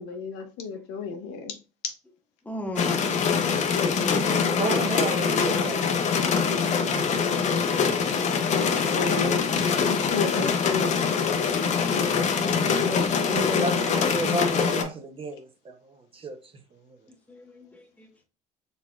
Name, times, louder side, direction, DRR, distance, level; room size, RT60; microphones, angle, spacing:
voice 1, 0.0-1.5 8.5-9.4 9.9-10.9 12.5-13.8, left 5 dB, 75° left, 0.9 m, -32 dB
voice 2, 2.4-3.0 17.3-18.2, left 1 dB, 10° left, 1.0 m, -37 dB
sound 1, 2.8-14.8, left 6 dB, 45° left, 0.8 m, -24 dB
voice 3, 4.6-5.8 6.9-7.2 13.3-16.4 16.9-17.0, right 2 dB, 35° right, 0.8 m, -32 dB
4.1 x 3.5 x 2.3 m
supercardioid pair, 85°, 17 cm